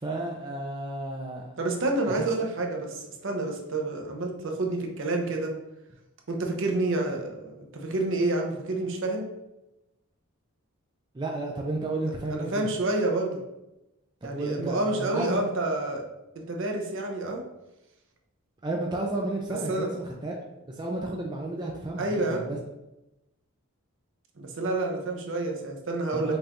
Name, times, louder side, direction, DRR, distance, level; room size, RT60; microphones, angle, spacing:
voice 1, 0.0-1.4 2.1-2.2 11.1-12.7 14.2-15.4 18.6-22.6 26.1-26.4, right 2 dB, 20° right, -1 dB, 0.4 m, -32 dB
voice 2, 1.6-5.5 6.3-9.3 12.3-13.4 14.2-16.0 16.4-17.4 19.7-19.9 22.0-22.4 24.4-26.4, right 2 dB, 55° right, 2 dB, 0.6 m, -29 dB
5.3 x 2.5 x 2.9 m, 0.93 s
head